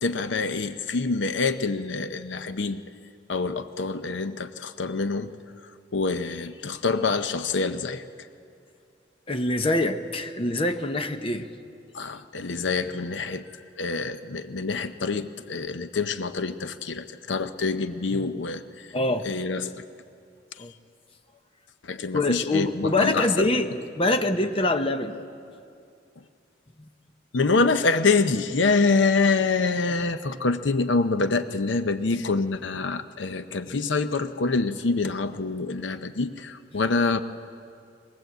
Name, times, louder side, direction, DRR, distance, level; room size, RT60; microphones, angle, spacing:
voice 1, 0.0-2.8 3.3-5.3 5.9-8.0 11.9-13.4 13.8-18.6 19.2-19.7 21.8-23.5 27.3-37.2, left 4 dB, 70° left, 10 dB, 0.7 m, -26 dB
voice 2, 9.3-11.5 17.3-17.5 18.1-18.3 18.9-19.3 20.6-20.7 22.1-25.2, left 2 dB, 30° left, 7 dB, 0.8 m, -25 dB
21.5 x 20.0 x 8.0 m, 2.4 s
head